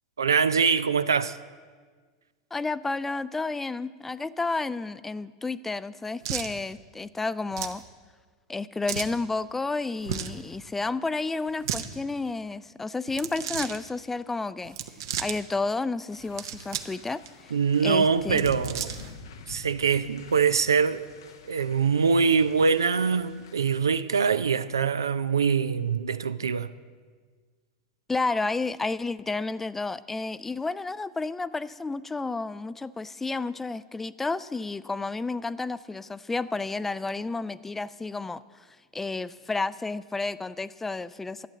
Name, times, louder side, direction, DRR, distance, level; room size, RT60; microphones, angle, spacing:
voice 1, 0.2-1.4 17.5-19.0 19.5-21.0 21.5-26.7, right 5 dB, 90° right, 0.4 m, -23 dB
voice 2, 2.5-7.8 8.5-14.8 15.2-17.2 17.8-18.4 28.1-38.4 38.9-41.5, left 3 dB, 10° left, 0.4 m, -31 dB
sound 1, 6.2-6.5 7.5-7.8 8.9-9.2 10.0-10.4 11.5-11.9 13.1-13.8 14.7-15.4 16.2-17.0 17.3-17.4 18.2-19.1, right 9 dB, 70° right, 0.8 m, -34 dB
sound 2, 16.1-23.8, left 3 dB, 75° left, 1.0 m, -46 dB
12.0 x 8.3 x 7.5 m
hypercardioid pair, 95°, 2 cm